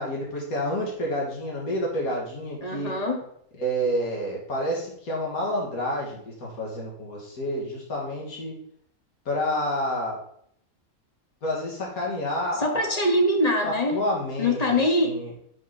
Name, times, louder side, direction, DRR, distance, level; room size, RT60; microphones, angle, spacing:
voice 1, 0.0-2.9 3.6-8.5 9.3-10.2 11.4-13.0 13.6-14.6 15.0-15.3, equal, 80° left, -3 dB, 2.5 m, -29 dB
voice 2, 2.6-3.2 12.6-14.0 14.4-15.1, left 1 dB, 30° left, 2 dB, 1.2 m, -23 dB
6.4 x 6.0 x 4.1 m, 0.67 s
omnidirectional pair, 1.5 m